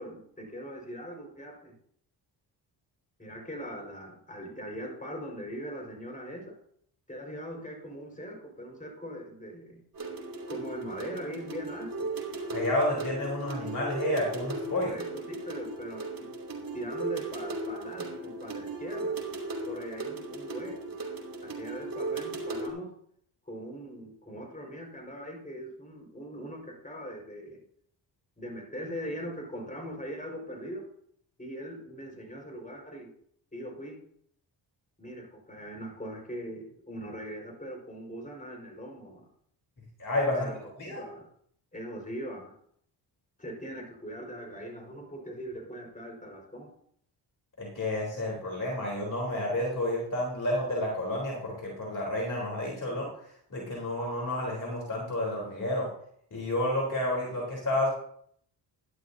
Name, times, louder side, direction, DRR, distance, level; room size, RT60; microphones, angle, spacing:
voice 1, 0.0-1.7 3.2-6.6 7.1-9.8 10.5-12.1 14.8-16.3 16.7-19.2 19.7-20.9 21.4-23.0 23.5-27.6 28.4-30.9 31.4-33.1 33.5-34.0 35.0-39.3 40.3-41.3 41.7-42.5 43.4-46.7, equal, 15° left, 1 dB, 5.3 m, -41 dB
sound 1, 9.9-22.7, right 3 dB, 45° right, 3.1 m, -37 dB
voice 2, 12.5-14.9 40.0-40.5 40.8-41.0 47.6-55.9 56.3-57.9, left 1 dB, 40° left, -3 dB, 3.9 m, -30 dB
13.0 x 11.5 x 2.8 m, 0.65 s
supercardioid pair, 55°, 46 cm